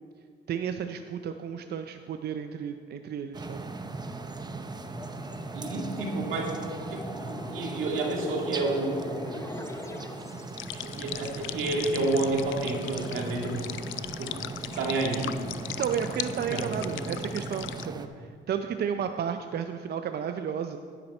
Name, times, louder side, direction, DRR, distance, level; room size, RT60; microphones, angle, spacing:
voice 1, 0.5-3.6 15.8-18.1 18.5-20.8, right 8 dB, 55° right, 7 dB, 0.5 m, -32 dB
sound 1, 3.3-18.1, right 3 dB, 20° right, 0.8 m, -39 dB
sound 2, 4.8-10.6, left 1 dB, 15° left, 0.8 m, -40 dB
voice 2, 5.5-6.5 6.9-9.2 10.7-13.7 14.2-14.4 14.8-15.4 16.4-17.0, right 2 dB, 85° right, -1 dB, 2.2 m, -30 dB
sound 3, 10.6-17.9, left 14 dB, 80° left, 0.4 m, -39 dB
10.5 x 10.0 x 4.3 m, 2.1 s
cardioid pair, 90°, 20 cm